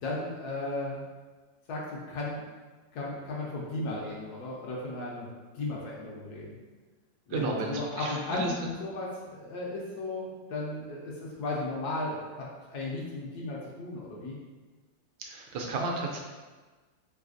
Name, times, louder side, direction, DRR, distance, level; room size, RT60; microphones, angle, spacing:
voice 1, 0.0-1.0 1.7-2.5 2.9-5.3 5.5-6.5 7.3-14.3, left 2 dB, 70° left, -4 dB, 1.0 m, -35 dB
voice 2, 7.3-8.7 15.2-16.2, right 2 dB, 85° right, 0 dB, 1.3 m, -33 dB
3.3 x 3.1 x 2.5 m, 1.3 s
omnidirectional pair, 2.0 m